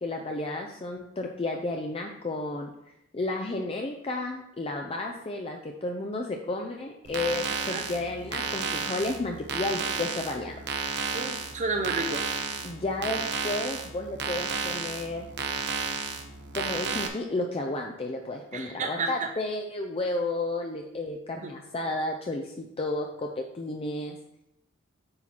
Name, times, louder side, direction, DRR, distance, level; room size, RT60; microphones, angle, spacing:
voice 1, 0.0-2.7 3.1-10.5 12.6-15.3 16.5-24.2, left 2 dB, 30° left, 2 dB, 0.5 m, -32 dB
sound 1, 7.0-17.1, right 5 dB, 55° right, 0.9 m, -32 dB
voice 2, 11.1-12.2 18.5-19.3, right 3 dB, 35° right, 5 dB, 0.5 m, -31 dB
8.7 x 4.4 x 4.2 m, 0.84 s
head